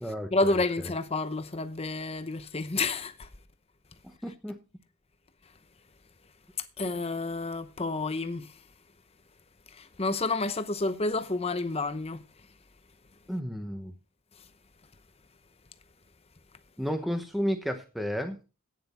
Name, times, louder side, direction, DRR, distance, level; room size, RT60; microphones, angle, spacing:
voice 1, 0.3-3.3 6.8-8.5 9.8-12.2, left 3 dB, 25° left, 0.8 m, -29 dB
voice 2, 4.2-4.6 13.3-13.9 16.8-18.4, equal, ahead, 0.9 m, -32 dB
11.5 x 9.5 x 4.2 m
head